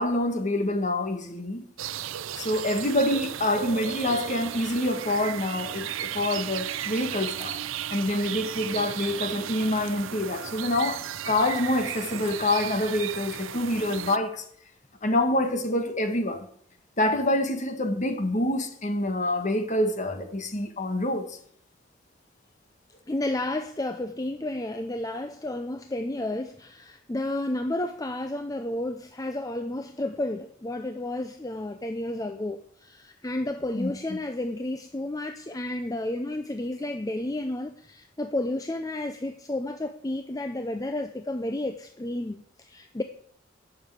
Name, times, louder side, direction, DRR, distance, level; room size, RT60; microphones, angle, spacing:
voice 1, 0.0-1.6 2.3-7.6 7.9-14.4 15.0-16.5 17.0-21.4 33.7-33.9, left 1 dB, 40° left, 1.6 m, -26 dB
sound 1, 1.8-14.2, right 10 dB, 90° right, 0.6 m, -35 dB
voice 2, 23.1-43.0, left 1 dB, 20° left, 0.6 m, -31 dB
11.0 x 6.9 x 8.3 m
head